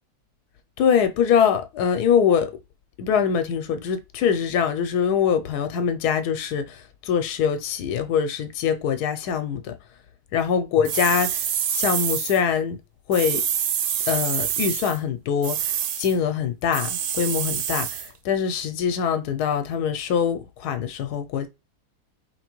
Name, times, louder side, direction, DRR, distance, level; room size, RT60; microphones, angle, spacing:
voice 1, 0.8-2.5 3.0-9.7 10.3-12.8 13.1-13.4 14.1-21.5, left 7 dB, 85° left, 1.1 m, -23 dB
sound 1, 10.9-12.4 13.1-15.0 15.4-16.1 16.7-18.1, right 9 dB, 70° right, 0.7 m, -26 dB
4.7 x 2.9 x 3.0 m
omnidirectional pair, 1.6 m